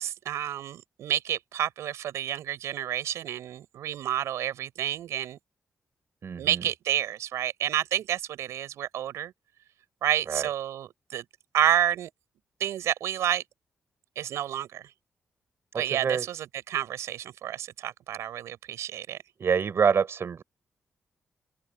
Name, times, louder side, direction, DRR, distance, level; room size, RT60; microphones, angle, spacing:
voice 1, 0.0-5.4 6.4-9.3 10.0-11.2 11.5-12.1 12.6-13.4 14.2-14.8 15.8-19.2, right 11 dB, 85° right, 6.9 m, -29 dB
voice 2, 6.2-6.7 10.3-10.5 15.7-16.3 19.4-20.4, right 6 dB, 60° right, 5.6 m, -26 dB
open air
supercardioid pair, 50°, 5 cm